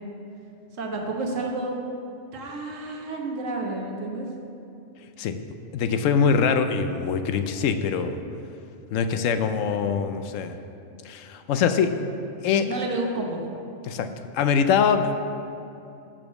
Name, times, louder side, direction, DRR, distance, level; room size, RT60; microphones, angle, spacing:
voice 1, 0.8-1.7 2.3-4.3 12.6-13.4 14.0-14.1, right 2 dB, 85° right, 1 dB, 1.4 m, -30 dB
voice 2, 5.7-8.2 8.9-10.6 11.0-12.0 12.4-12.8 13.8-15.2, left 6 dB, 90° left, 8 dB, 1.0 m, -23 dB
6.2 x 6.1 x 7.0 m, 2.8 s
omnidirectional pair, 1.3 m